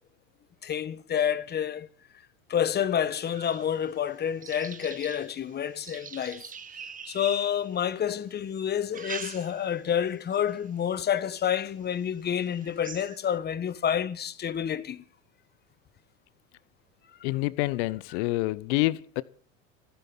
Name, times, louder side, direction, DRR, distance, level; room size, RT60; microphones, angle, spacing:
voice 1, 0.6-1.9 2.5-6.4 7.0-15.0, left 9 dB, 25° left, 1.2 m, -29 dB
sound 1, 3.1-8.1 8.7-9.9 10.3-10.7 11.3-11.4 11.8-11.9 12.3-13.4, right 6 dB, 20° right, 1.2 m, -44 dB
voice 2, 17.2-19.2, left 20 dB, 55° left, 1.0 m, -27 dB
18.5 x 15.5 x 4.5 m
hypercardioid pair, 95°, 40 cm